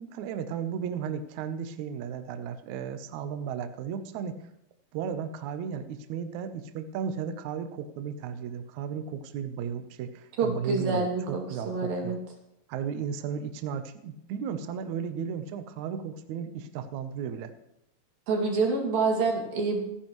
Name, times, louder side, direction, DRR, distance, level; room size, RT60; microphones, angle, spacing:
voice 1, 0.0-4.4 4.9-12.2 12.7-17.5, right 7 dB, 85° right, 9 dB, 1.6 m, -35 dB
voice 2, 10.4-12.2 18.3-19.8, right 4 dB, 65° right, 0 dB, 4.1 m, -27 dB
28.0 x 10.0 x 3.1 m, 0.81 s
omnidirectional pair, 4.6 m